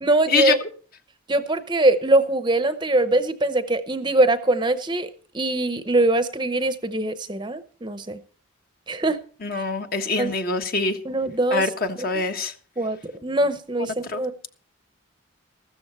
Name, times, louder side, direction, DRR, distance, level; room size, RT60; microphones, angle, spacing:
voice 1, 0.0-0.6 1.3-5.1 5.3-8.2 8.9-9.2 10.2-10.3 11.0-11.7 12.8-14.3, right 2 dB, 20° right, 11 dB, 0.8 m, -22 dB
voice 2, 9.4-11.0 11.5-12.5 14.0-14.2, left 4 dB, 45° left, 6 dB, 1.4 m, -24 dB
15.0 x 13.5 x 4.3 m, 0.41 s
head